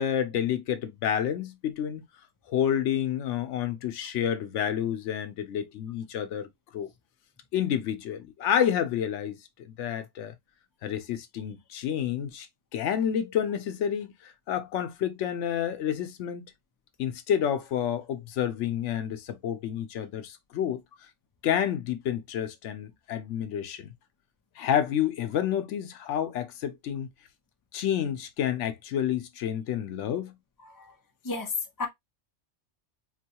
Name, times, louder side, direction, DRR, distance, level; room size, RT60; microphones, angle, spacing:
voice 1, 0.0-2.0 2.5-6.9 7.5-9.4 9.6-10.3 10.8-12.5 12.7-16.5 17.0-20.8 21.4-23.9 24.6-27.1 27.7-30.3, left 9 dB, 85° left, 0.9 m, -29 dB
voice 2, 30.6-30.9 31.2-31.9, left 4 dB, 20° left, 0.6 m, -33 dB
4.1 x 2.2 x 2.8 m
omnidirectional pair, 1.2 m